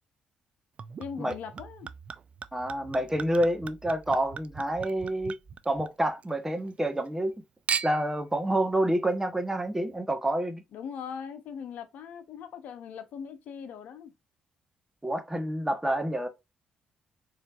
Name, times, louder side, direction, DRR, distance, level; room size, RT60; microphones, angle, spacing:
Chink clink / Liquid, 0.8-6.3 6.6-7.3 7.7-8.2 8.9-9.0, right 6 dB, 50° right, 0.5 m, -38 dB
voice 1, 1.0-1.9 10.7-14.1, left 7 dB, 75° left, 0.9 m, -40 dB
voice 2, 2.5-5.4 5.6-7.3 7.8-10.6 15.0-16.3, right 1 dB, 15° right, 1.4 m, -28 dB
4.4 x 3.3 x 2.7 m
supercardioid pair, 60°, 3 cm